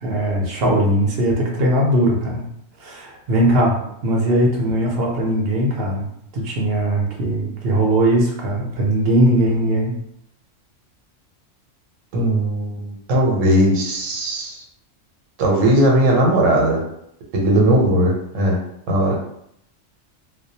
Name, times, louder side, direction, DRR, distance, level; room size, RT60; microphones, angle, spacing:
voice 1, 0.0-2.4 2.8-3.8 4.0-6.1 6.3-9.9, right 1 dB, 60° right, -1 dB, 0.7 m, -19 dB
voice 2, 12.1-14.6 15.4-16.8 17.3-18.6 18.9-19.2, right 1 dB, 80° right, 0 dB, 1.0 m, -18 dB
2.3 x 2.1 x 2.7 m, 0.73 s
omnidirectional pair, 1.3 m